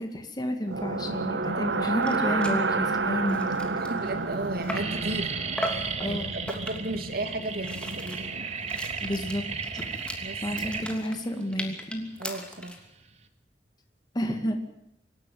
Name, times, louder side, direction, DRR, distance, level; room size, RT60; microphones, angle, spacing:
voice 1, 0.0-3.5 6.0-6.3 9.0-9.9 10.4-12.1 14.1-14.6, equal, 25° left, 5 dB, 2.1 m, -30 dB
sound 1, 0.7-8.7, right 3 dB, 90° right, 1.1 m, -31 dB
sound 2, 1.7-1.8 2.0-2.2 2.4-2.6 3.1-5.0 5.6-5.9 6.5-7.0 7.4-12.9, equal, 5° left, 2.9 m, -38 dB
sound 3, 2.1-2.7 3.3-3.4 3.7-4.1 4.3-13.3, right 5 dB, 40° right, 1.7 m, -35 dB
voice 2, 3.7-8.5 10.2-10.4 12.2-12.8, right 2 dB, 60° right, 6 dB, 2.4 m, -35 dB
25.5 x 12.0 x 9.4 m, 0.85 s
head